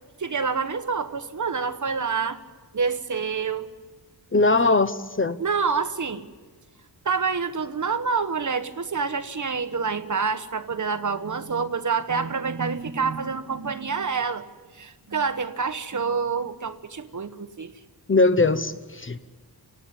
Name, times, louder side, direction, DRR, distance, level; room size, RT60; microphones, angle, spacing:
voice 1, 0.2-2.4 2.7-3.7 5.4-6.2 7.0-14.4 14.7-17.7, right 5 dB, 45° right, 10 dB, 1.4 m, -27 dB
voice 2, 4.3-5.4 18.1-19.2, left 3 dB, 30° left, 13 dB, 1.0 m, -20 dB
30.0 x 17.5 x 9.9 m, 1.4 s
wide cardioid pair, 105°, 42 cm